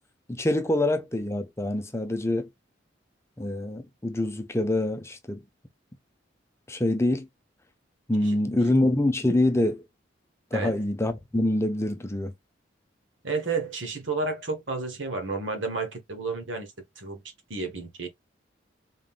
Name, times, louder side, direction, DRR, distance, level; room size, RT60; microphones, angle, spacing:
voice 1, 0.3-2.5 3.4-5.4 6.7-7.3 8.1-9.8 10.5-12.3, left 1 dB, 15° left, 0.7 m, -25 dB
voice 2, 13.2-16.7 17.0-17.2 17.5-18.1, right 3 dB, 80° right, 1.4 m, -31 dB
3.9 x 3.7 x 2.4 m
head